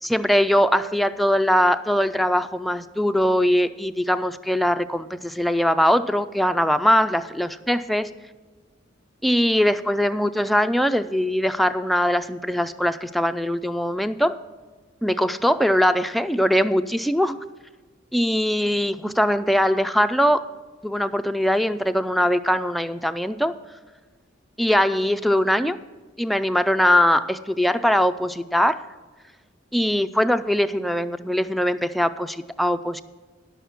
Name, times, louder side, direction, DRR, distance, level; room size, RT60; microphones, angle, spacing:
voice 1, 0.0-8.1 9.2-14.4 15.0-17.4 18.1-20.4 20.8-23.5 24.6-25.8 26.2-28.8 29.7-33.0, equal, ahead, 9 dB, 0.3 m, -21 dB
11.0 x 7.0 x 7.3 m, 1.3 s
head